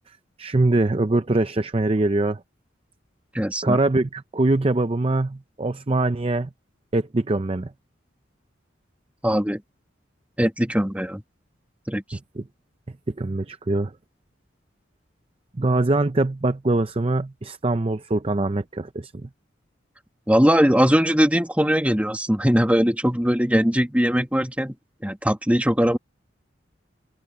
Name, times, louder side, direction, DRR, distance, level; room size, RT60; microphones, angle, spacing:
voice 1, 0.4-2.4 3.6-6.5 6.9-7.7 12.4-12.5 13.1-13.9 15.6-19.3, right 2 dB, 30° right, 0.6 m, -23 dB
voice 2, 3.3-3.8 9.2-9.6 10.4-11.2 11.9-12.2 20.3-24.8 25.0-26.0, equal, 5° right, 2.0 m, -20 dB
open air
head